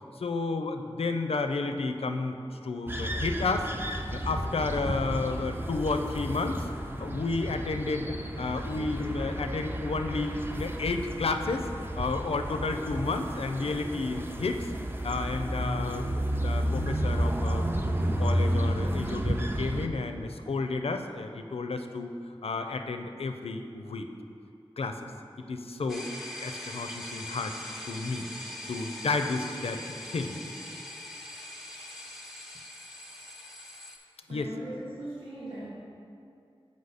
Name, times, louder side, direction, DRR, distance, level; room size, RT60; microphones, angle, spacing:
voice 1, 0.2-2.4 2.6-3.7 4.1-6.7 7.0-8.1 8.4-11.7 12.0-14.7 15.0-17.7 18.0-22.1 22.4-24.1 24.8-25.0 25.5-26.1 26.4-27.6 27.8-28.3 28.7-29.8 30.1-30.4 34.3-34.5, left 3 dB, 85° left, 6 dB, 0.4 m, -31 dB
sound 1, 2.9-19.9, equal, 20° right, 0.5 m, -32 dB
sound 2, 25.9-34.0, left 1 dB, ahead, 0.9 m, -42 dB
voice 2, 34.3-35.7, right 1 dB, 85° right, -10 dB, 1.3 m, -39 dB
6.6 x 5.1 x 4.0 m, 2.6 s
wide cardioid pair, 50°, 10 cm